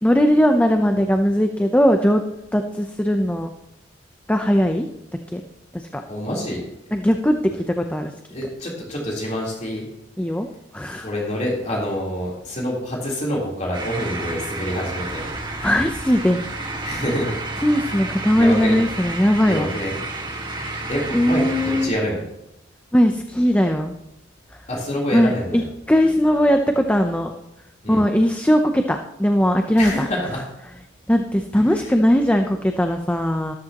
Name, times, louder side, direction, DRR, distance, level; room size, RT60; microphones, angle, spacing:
voice 1, 0.0-2.2 2.5-3.5 4.3-4.9 5.3-5.4 5.7-6.0 6.9-8.1 10.2-10.5 10.7-11.1 15.6-16.4 17.6-19.7 21.1-21.9 22.9-24.0 25.1-25.6 25.9-27.3 27.9-30.0 31.1-33.5, equal, 10° left, 5 dB, 0.6 m, -19 dB
voice 2, 6.1-6.6 7.5-7.6 8.3-9.9 11.0-15.3 16.8-17.3 18.4-18.8 19.1-20.0 20.9-22.3 24.7-25.7 27.8-28.1 29.8-30.4 31.7-31.9, equal, 40° left, -4 dB, 3.6 m, -27 dB
sound 1, 13.7-21.9, right 2 dB, 25° right, 1.6 m, -31 dB
13.5 x 13.5 x 3.0 m, 0.88 s
head